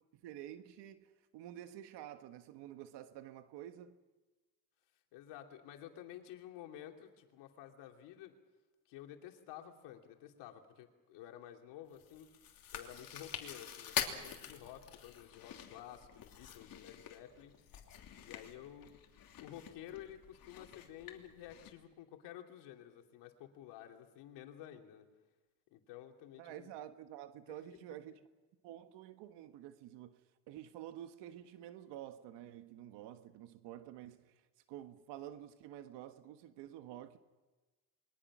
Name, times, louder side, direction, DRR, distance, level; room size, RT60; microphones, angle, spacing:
voice 1, 0.0-4.0 26.4-28.2 28.6-30.2 30.5-34.4 34.7-37.2, right 12 dB, 80° right, 1.4 m, -50 dB
voice 2, 5.1-8.3 8.9-12.3 12.7-17.5 18.2-18.9 19.4-25.1 25.7-26.7 27.5-27.7, left 11 dB, 80° left, 2.9 m, -52 dB
Chewing mastication, 11.9-21.7, left 9 dB, 55° left, 3.1 m, -45 dB
27.5 x 22.5 x 6.1 m
cardioid pair, 105°, 41 cm